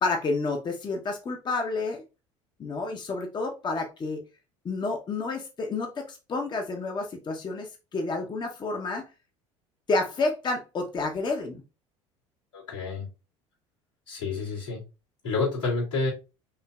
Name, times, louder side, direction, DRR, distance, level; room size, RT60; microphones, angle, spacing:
voice 1, 0.0-2.0 2.6-4.2 4.6-9.0 9.9-11.6, left 3 dB, 30° left, 2 dB, 0.8 m, -30 dB
voice 2, 12.5-13.1 14.1-14.8 15.2-16.1, left 3 dB, 80° left, -6 dB, 2.5 m, -29 dB
5.6 x 2.8 x 2.3 m, 0.29 s
figure-of-eight pair, 65°, 16 cm